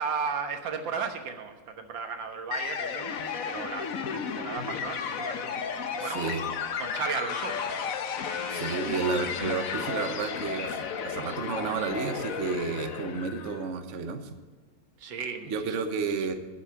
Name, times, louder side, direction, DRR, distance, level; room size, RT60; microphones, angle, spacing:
voice 1, 0.0-3.1 3.4-5.7 6.0-7.9 15.0-15.8, right 5 dB, 85° right, 5 dB, 2.0 m, -35 dB
sound 1, 2.5-13.7, left 6 dB, 55° left, 1.1 m, -33 dB
voice 2, 6.0-6.4 8.5-14.3 15.5-16.3, right 5 dB, 50° right, 6 dB, 1.1 m, -31 dB
10.5 x 8.1 x 8.3 m, 1.4 s
omnidirectional pair, 2.0 m